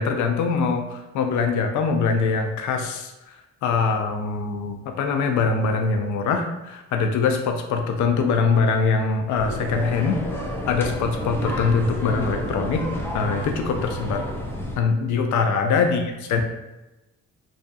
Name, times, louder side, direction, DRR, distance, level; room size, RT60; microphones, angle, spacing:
voice 1, 0.0-3.1 3.6-12.8 13.1-14.2 14.8-16.4, left 5 dB, 75° left, 4 dB, 0.5 m, -23 dB
sound 1, 9.3-14.8, left 1 dB, 10° left, 0.4 m, -30 dB
2.4 x 2.3 x 2.5 m, 1.0 s
cardioid pair, 90°, 30 cm